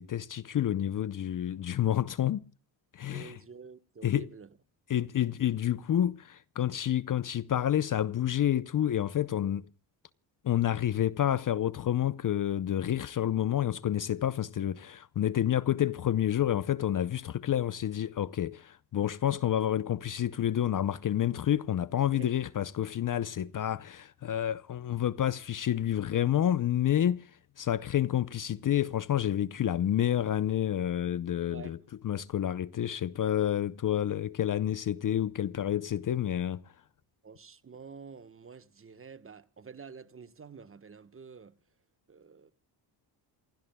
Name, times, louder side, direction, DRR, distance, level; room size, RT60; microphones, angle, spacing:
voice 1, 0.0-2.5 2.9-3.4 4.0-4.3 4.9-9.7 10.4-31.8 32.0-36.6, left 11 dB, 45° left, 0.7 m, -29 dB
voice 2, 3.0-4.5 22.1-22.3 31.5-31.9 37.2-41.6 42.1-42.5, right 5 dB, 30° right, 1.3 m, -49 dB
28.0 x 16.0 x 2.2 m
cardioid pair, 90°, 46 cm